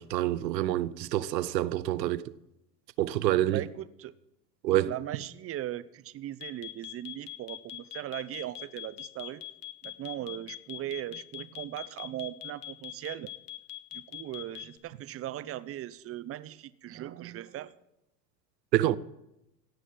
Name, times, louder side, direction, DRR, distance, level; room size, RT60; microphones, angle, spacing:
voice 1, 0.0-2.3 3.0-3.6 4.6-4.9 18.7-19.0, right 14 dB, 85° right, 0.9 m, -27 dB
voice 2, 3.5-4.1 4.8-9.4 9.8-13.3 13.9-17.7, right 13 dB, 30° right, 0.7 m, -39 dB
sound 1, 6.4-14.8, left 14 dB, 70° left, 1.9 m, -41 dB
17.0 x 6.4 x 9.3 m
hypercardioid pair, 110°, 49 cm